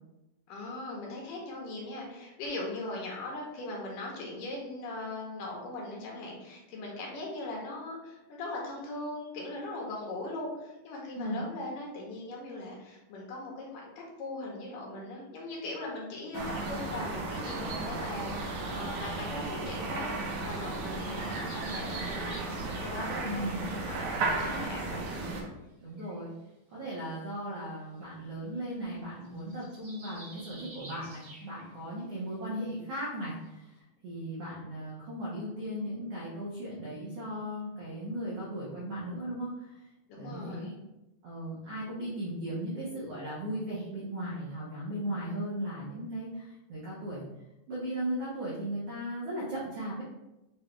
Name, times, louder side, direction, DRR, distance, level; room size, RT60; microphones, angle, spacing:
voice 1, 0.5-20.1 20.4-22.4 22.8-25.1 40.1-40.8, left 2 dB, 75° left, -2 dB, 2.2 m, -40 dB
sound 1, 16.3-25.4, right 3 dB, 70° right, 2.0 m, -34 dB
sound 2, 19.1-20.2 20.7-23.3 23.6-25.2 25.7-25.8 26.0-26.2 27.3-27.4 27.6-27.7 28.0-28.2 28.5-28.7 29.0-31.9 32.2-32.3 32.7-32.8 33.4-33.5, right 1 dB, 45° right, 1.3 m, -52 dB
voice 2, 23.2-23.7 25.8-26.3 26.7-39.9 40.2-40.7 41.2-47.2 47.7-50.0, right 1 dB, 90° right, -7 dB, 1.3 m, -37 dB
6.8 x 2.3 x 3.1 m, 0.96 s
omnidirectional pair, 4.2 m